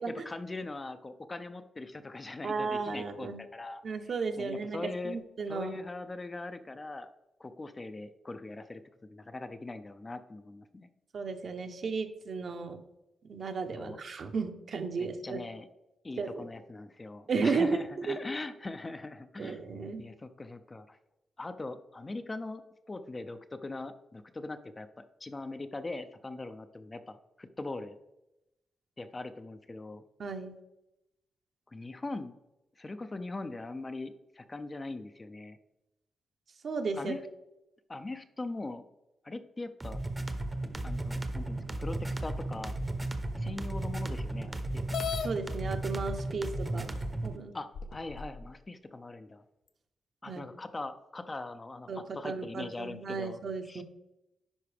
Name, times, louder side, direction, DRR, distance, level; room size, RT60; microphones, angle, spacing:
voice 1, 0.0-3.8 4.4-5.2 5.5-7.1 7.4-10.9 13.8-14.0 15.0-15.7 16.0-19.6 20.0-21.0 21.4-22.6 22.9-28.0 29.0-30.0 31.7-32.3 32.8-35.6 37.0-37.2 37.9-38.8 39.2-40.0 40.8-42.8 43.4-44.9 47.5-49.4 50.2-51.9 52.1-53.8, left 2 dB, 20° left, 9 dB, 0.4 m, -41 dB
voice 2, 2.4-3.4 3.8-5.8 11.1-12.8 13.3-15.4 16.2-16.4 17.3-18.2 19.4-20.1 30.2-30.6 36.6-37.1 45.2-47.0 47.2-47.6 50.3-50.4 51.9-53.8, right 4 dB, 50° right, 6 dB, 0.8 m, -34 dB
sound 1, 39.8-47.4, right 2 dB, 15° right, 0.7 m, -35 dB
sound 2, 44.9-45.3 46.3-46.4 47.0-47.1 47.7-48.4, left 8 dB, 80° left, 0.6 m, -35 dB
10.5 x 4.6 x 3.3 m, 0.92 s
wide cardioid pair, 130°, 0 cm